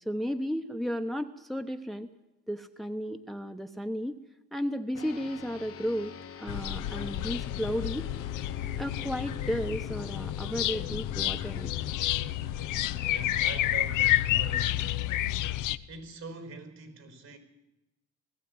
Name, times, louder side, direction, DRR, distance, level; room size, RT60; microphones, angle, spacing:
voice 1, 0.0-2.1 2.5-4.2 4.5-8.1 8.8-11.7, equal, ahead, 1.1 m, -34 dB
sound 1, 4.9-14.6, left 6 dB, 50° left, 1.2 m, -46 dB
sound 2, 6.5-15.8, left 14 dB, 85° left, 0.8 m, -30 dB
voice 2, 13.1-15.0 15.9-17.4, right 3 dB, 60° right, 5.0 m, -43 dB
19.0 x 15.0 x 9.5 m
cardioid pair, 90°, 30 cm